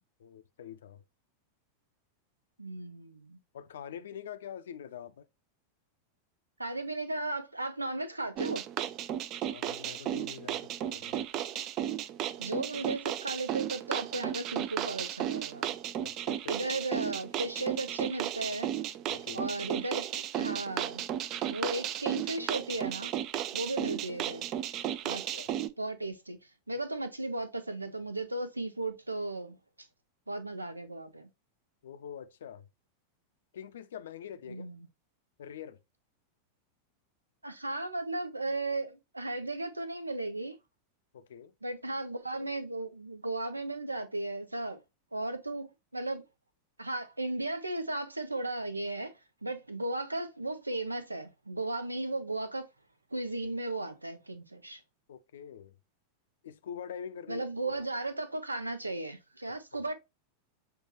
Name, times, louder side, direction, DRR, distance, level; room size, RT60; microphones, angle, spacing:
voice 1, 0.2-1.0 3.5-5.3 9.4-11.2 16.0-16.6 19.1-19.5 25.1-25.5 31.8-32.7 33.5-34.7 35.4-35.8 41.1-41.5 55.1-55.8 56.4-57.8 59.5-59.6, left 8 dB, 60° left, 0.4 m, -45 dB
voice 2, 2.6-3.4 6.6-8.6 12.4-15.7 16.5-18.8 19.3-21.0 21.4-23.1 23.5-24.6 25.0-25.3 25.8-26.4 26.7-29.6 30.3-31.3 34.5-34.9 37.4-40.6 41.6-44.8 45.1-46.2 46.8-49.1 49.4-52.7 53.1-54.8 57.3-59.9, right 2 dB, 85° right, 0.6 m, -35 dB
sound 1, 8.4-25.7, right 11 dB, 35° right, 0.3 m, -34 dB
6.6 x 2.2 x 2.9 m
figure-of-eight pair, 90°, 0 cm